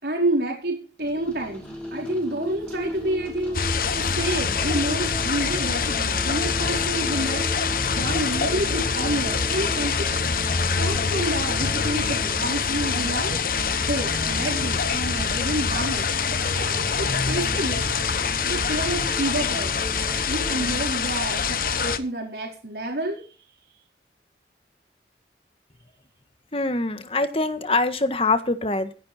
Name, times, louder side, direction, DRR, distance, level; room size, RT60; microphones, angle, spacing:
voice 1, 0.0-7.5 7.9-13.4 13.8-16.1 16.5-17.9 18.4-19.8 20.3-23.2, right 1 dB, 65° right, 0 dB, 4.4 m, -29 dB
sound 1, 1.0-20.8, equal, 10° left, 5.9 m, -36 dB
sound 2, 3.5-22.0, left 5 dB, 50° left, 1.1 m, -25 dB
voice 2, 26.5-28.9, left 3 dB, 30° left, 9 dB, 1.6 m, -24 dB
16.5 x 10.5 x 4.4 m, 0.38 s
head